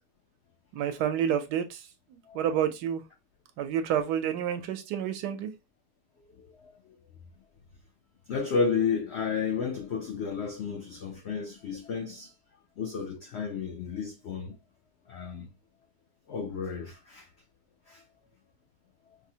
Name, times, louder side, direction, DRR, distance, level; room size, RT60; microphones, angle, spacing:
voice 1, 0.7-1.9 2.1-3.0 3.6-5.5, right 9 dB, 85° right, 1.2 m, -29 dB
voice 2, 6.4-7.0 8.3-12.3 12.8-14.6 15.1-15.5 16.3-17.3 17.9-18.0, left 5 dB, 75° left, 0.6 m, -32 dB
4.7 x 2.0 x 2.7 m
omnidirectional pair, 1.7 m